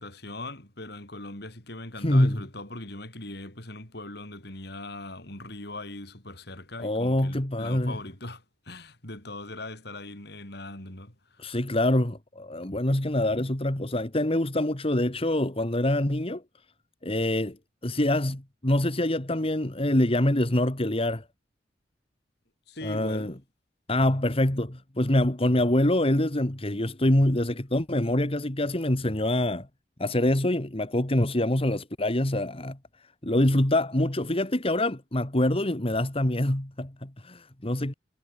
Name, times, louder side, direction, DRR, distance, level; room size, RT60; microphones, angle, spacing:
voice 1, 0.0-11.5 22.7-23.4, left 2 dB, 65° left, 6.6 m, -40 dB
voice 2, 2.0-2.4 6.8-8.0 11.4-16.4 17.0-17.6 17.8-21.2 22.8-23.3 23.9-29.7 30.0-32.8 33.2-37.9, left 1 dB, 35° left, 2.1 m, -25 dB
head